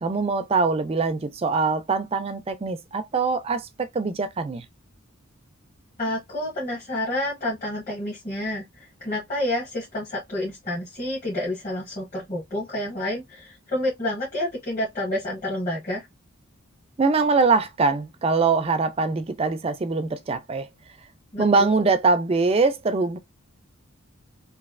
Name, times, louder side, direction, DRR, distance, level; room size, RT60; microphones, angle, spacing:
voice 1, 0.0-4.7 17.0-20.7 21.4-23.2, right 4 dB, 25° right, 0.4 m, -23 dB
voice 2, 6.0-16.1 21.3-21.9, left 1 dB, 35° left, 1.3 m, -29 dB
3.1 x 2.6 x 2.4 m
head